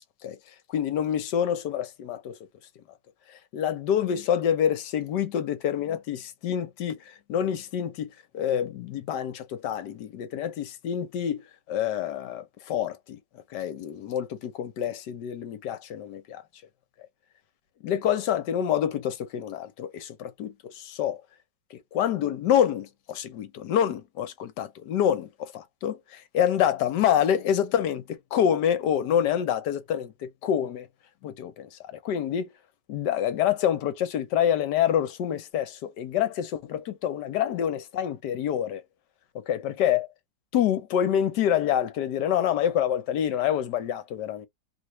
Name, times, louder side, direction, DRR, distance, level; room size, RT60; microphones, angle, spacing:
voice 1, 0.2-2.4 3.3-13.2 13.5-16.4 17.8-21.2 21.7-30.9 31.2-32.5 32.9-38.8 39.3-40.1 40.5-44.5, left 9 dB, 70° left, 1.3 m, -27 dB
3.2 x 2.5 x 3.0 m
omnidirectional pair, 2.0 m